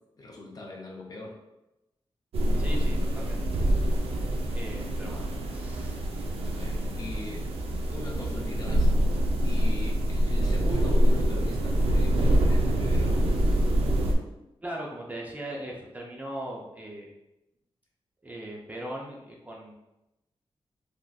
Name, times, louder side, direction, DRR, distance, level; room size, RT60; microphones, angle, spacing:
voice 1, 0.2-1.4 4.1-4.3 4.8-4.9 6.4-7.5 7.9-8.9 9.4-13.3, left 2 dB, 40° left, -1 dB, 0.5 m, -40 dB
sound 1, 2.3-14.1, right 1 dB, 90° right, 0.4 m, -25 dB
voice 2, 2.6-3.4 4.5-6.0 14.6-17.1 18.2-19.7, right 1 dB, 15° right, -3 dB, 0.4 m, -39 dB
3.3 x 2.5 x 2.2 m, 0.93 s
wide cardioid pair, 170°, 10 cm